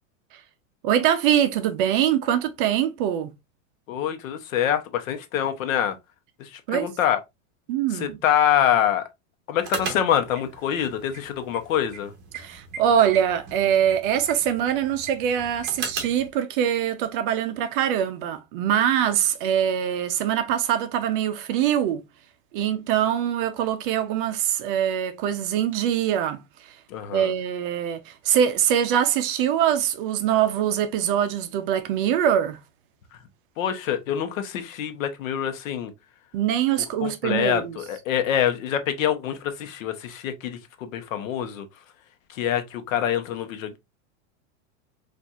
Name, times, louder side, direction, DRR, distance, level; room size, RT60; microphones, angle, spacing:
voice 1, 0.8-3.3 6.7-6.9 7.7-8.2 12.3-22.0 22.5-26.8 27.1-32.6 36.3-37.8, right 10 dB, 45° right, 0.5 m, -23 dB
voice 2, 3.9-6.0 6.4-7.2 7.9-9.1 9.5-12.1 26.9-27.3 33.6-35.9 37.0-41.7 42.3-43.8, left 9 dB, 85° left, 0.8 m, -25 dB
sound 1, 9.6-16.3, right 5 dB, 25° right, 0.9 m, -38 dB
4.1 x 2.5 x 2.3 m
supercardioid pair, 160°, 39 cm